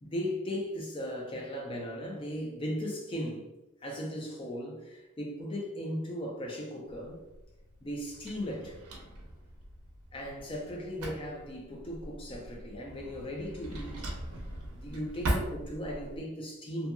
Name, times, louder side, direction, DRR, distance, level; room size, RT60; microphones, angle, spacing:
voice 1, 0.0-3.5 3.8-7.2 7.8-8.8 10.1-14.1 14.7-16.9, equal, 25° left, 0.4 m, -37 dB
Drawer open or close, 6.9-16.2, right 1 dB, 90° right, 0.6 m, -40 dB
2.8 x 2.6 x 2.2 m
head